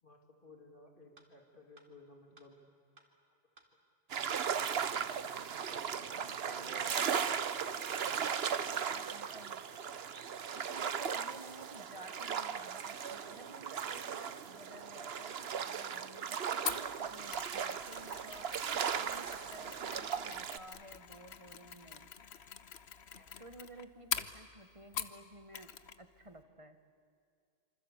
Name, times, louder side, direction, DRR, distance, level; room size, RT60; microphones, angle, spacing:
voice 1, 0.0-2.6 5.4-6.8 23.1-23.3, left 2 dB, 55° left, 2 dB, 2.7 m, -58 dB
sound 1, 1.2-1.3 1.8-1.9 2.4-2.5 3.0-3.1 3.6-3.7 4.2-4.3 4.8-4.9 5.4-5.5 6.0-6.1 6.6-6.7 7.2-7.3 7.8-7.9 8.4-8.5 9.0-9.1 9.6-9.7 10.2-10.3 10.8-10.9 11.4-11.5 12.0-12.1 12.6-12.7 13.2-13.3 13.8-13.9 14.4-14.5 15.0-15.1 15.6-15.7 16.2-16.3 16.8-16.9 17.4-17.5 18.0-18.1 18.6-18.7, right 2 dB, 55° right, 2.6 m, -60 dB
sound 2, 4.1-20.6, right 7 dB, 75° right, 1.1 m, -37 dB
voice 2, 6.1-7.2 8.2-8.3 8.9-9.6 10.5-18.5 19.0-22.1 23.1-25.7 26.0-26.8, right 1 dB, 30° right, 8 dB, 1.6 m, -53 dB
Mechanisms, 16.7-25.2 25.5-26.0 26.3-26.4, left 7 dB, 90° left, 1.2 m, -44 dB
27.0 x 25.5 x 8.2 m, 2.3 s
omnidirectional pair, 1.1 m